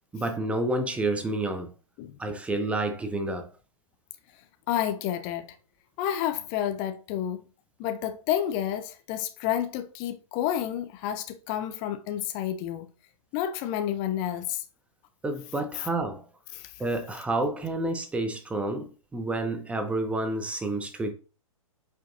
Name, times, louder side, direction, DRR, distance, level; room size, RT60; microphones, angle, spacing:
voice 1, 0.1-1.7 2.2-3.5 15.2-16.2 16.8-21.1, right 2 dB, 5° right, 0.7 m, -29 dB
voice 2, 4.7-5.5 6.0-7.4 7.8-12.9 13.3-14.6 16.5-16.7, left 11 dB, 25° left, 0.7 m, -30 dB
8.7 x 5.2 x 2.6 m
figure-of-eight pair, 120°, 18 cm